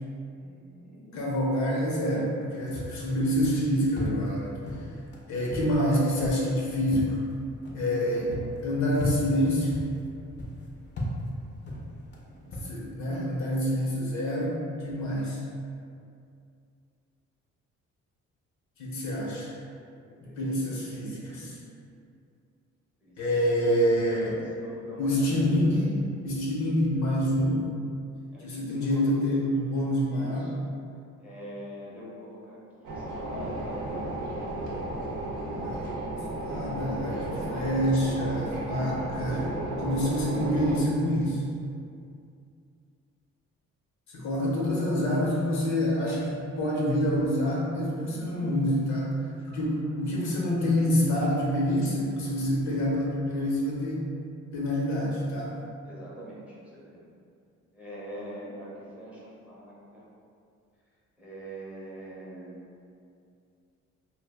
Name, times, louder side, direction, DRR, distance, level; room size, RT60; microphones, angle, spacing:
voice 1, 0.4-1.2 8.1-8.7 12.2-12.7 20.0-20.8 23.0-23.2 23.6-25.6 28.3-29.3 30.1-30.5 31.2-34.0 44.6-45.1 48.0-48.5 55.8-57.1 57.7-60.0 61.2-62.7, equal, 5° right, -7 dB, 0.6 m, -44 dB
voice 2, 1.1-4.9 5.3-7.2 7.7-9.7 12.6-14.5 14.8-15.4 18.8-19.5 20.2-21.6 23.2-24.4 25.0-27.7 28.4-30.4 35.6-35.9 36.4-39.5 39.8-41.4 44.1-54.0 54.5-55.6, equal, 70° left, -5 dB, 0.8 m, -27 dB
sound 1, 2.7-12.7, equal, 35° left, 0.5 m, -37 dB
sound 2, 32.8-40.8, right 1 dB, 80° right, 0.6 m, -33 dB
2.2 x 2.0 x 3.4 m, 2.4 s
cardioid pair, 90°, 30 cm